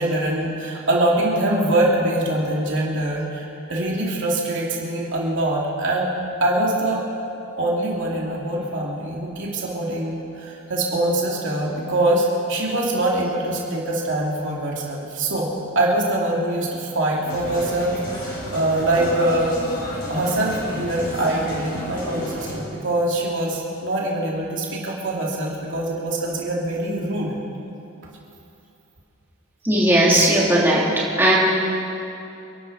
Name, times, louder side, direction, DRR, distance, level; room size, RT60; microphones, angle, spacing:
voice 1, 0.0-6.1 6.4-7.0 7.6-19.6 20.1-27.4, right 1 dB, 60° right, -3 dB, 2.8 m, -23 dB
sound 1, 17.2-22.6, equal, 45° left, 4.9 m, -32 dB
voice 2, 29.6-30.9 31.2-31.3, right 1 dB, 10° right, -7 dB, 3.4 m, -17 dB
28.5 x 12.0 x 4.3 m, 2.8 s
head